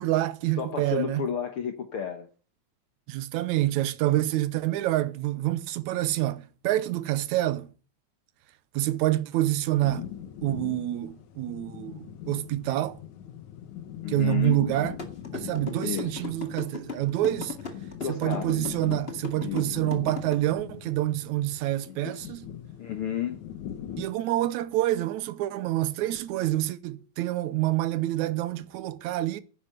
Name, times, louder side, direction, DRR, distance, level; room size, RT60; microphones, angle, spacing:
voice 1, 0.0-1.3 3.1-7.7 8.7-10.1 10.4-13.0 14.1-14.9 15.3-17.6 18.1-22.5 24.0-29.4, right 15 dB, 80° right, 2.1 m, -27 dB
voice 2, 0.6-2.3 14.0-14.6 15.8-16.3 18.0-18.6 19.4-19.7 21.9-22.3 22.8-23.4, left 9 dB, 55° left, 1.8 m, -32 dB
sound 1, 9.7-24.1, left 10 dB, 75° left, 2.6 m, -41 dB
sound 2, 15.0-20.3, left 5 dB, 25° left, 1.8 m, -36 dB
10.5 x 10.5 x 7.8 m
omnidirectional pair, 3.5 m